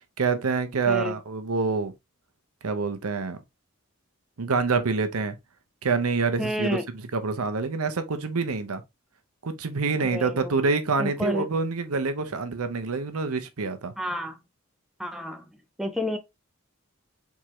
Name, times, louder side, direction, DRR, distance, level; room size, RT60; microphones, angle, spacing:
voice 1, 0.2-1.9 2.6-3.4 4.4-5.4 5.8-6.7 7.1-8.8 9.4-13.9, right 4 dB, 90° right, 0.8 m, -26 dB
voice 2, 6.4-6.8 10.0-10.6 11.0-11.5 14.0-14.4 15.0-15.4 15.8-16.2, equal, ahead, 0.5 m, -30 dB
4.6 x 3.6 x 3.0 m
head